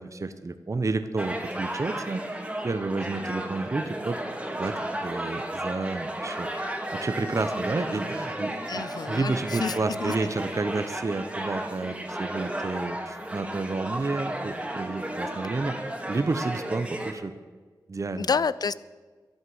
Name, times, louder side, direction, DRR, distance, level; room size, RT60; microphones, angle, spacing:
voice 1, 0.0-2.2 2.6-4.2 4.6-4.7 5.0-6.5 6.9-15.8 16.1-17.3 17.9-18.3, right 3 dB, 45° right, 10 dB, 1.0 m, -30 dB
sound 1, 1.2-17.1, right 1 dB, 15° right, 2.6 m, -33 dB
voice 2, 8.7-10.1 18.2-18.8, left 5 dB, 60° left, 18 dB, 0.6 m, -29 dB
12.5 x 11.0 x 7.7 m, 1.4 s
cardioid pair, 50°, 8 cm